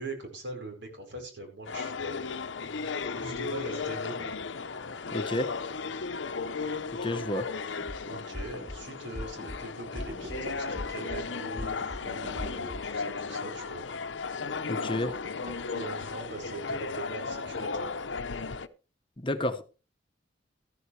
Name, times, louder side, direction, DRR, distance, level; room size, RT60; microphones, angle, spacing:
voice 1, 0.0-2.2 3.2-4.3 8.0-13.9 15.7-17.9, right 2 dB, 70° right, 4.8 m, -41 dB
sound 1, 1.6-18.7, left 4 dB, 85° left, 0.8 m, -35 dB
voice 2, 5.1-5.5 7.0-7.5 14.7-15.2 19.2-19.6, left 1 dB, 30° left, 1.0 m, -30 dB
sound 2, 7.7-8.0 8.3-8.8 9.1-9.6 9.9-10.4 10.8-11.2 11.6-12.0 12.4-12.8, left 1 dB, 20° right, 2.3 m, -39 dB
Knock, 10.1-10.9 12.1-12.8 15.1-15.8, equal, 40° right, 1.1 m, -46 dB
14.0 x 13.5 x 3.3 m
head